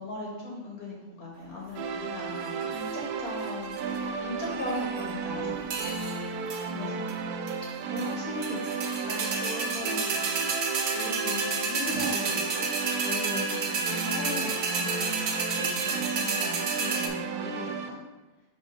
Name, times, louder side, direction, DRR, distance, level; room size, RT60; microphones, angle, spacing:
voice 1, 0.0-5.8 6.2-7.3 7.8-8.7 9.1-17.9, left 1 dB, 70° left, -3 dB, 2.1 m, -39 dB
sound 1, 1.8-17.9, right 5 dB, 85° right, 1.1 m, -34 dB
sound 2, 2.4-2.9 3.5-4.0 4.4-5.1 5.7-6.2 6.5-6.7 7.1-7.2 7.5-8.1 8.4-17.1, right 4 dB, 60° right, 1.0 m, -31 dB
6.2 x 3.8 x 5.0 m, 1.1 s
omnidirectional pair, 1.6 m